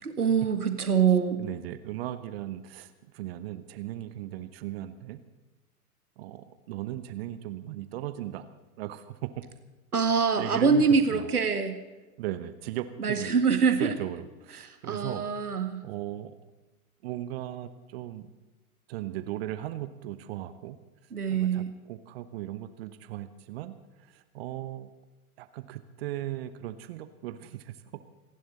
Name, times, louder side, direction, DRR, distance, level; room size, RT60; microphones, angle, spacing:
voice 1, 0.0-1.5 9.9-11.8 13.0-13.9 14.9-15.8 21.1-21.7, right 5 dB, 75° right, 7 dB, 2.0 m, -24 dB
voice 2, 1.4-5.2 6.2-8.5 8.8-9.4 10.4-10.8 11.1-11.3 12.2-13.4 13.8-15.5 15.8-16.3 17.0-18.3 18.9-20.8 21.3-24.9 25.4-27.8, right 13 dB, 40° right, 11 dB, 1.0 m, -37 dB
27.5 x 11.0 x 4.2 m, 1.1 s
figure-of-eight pair, 100°, 45 cm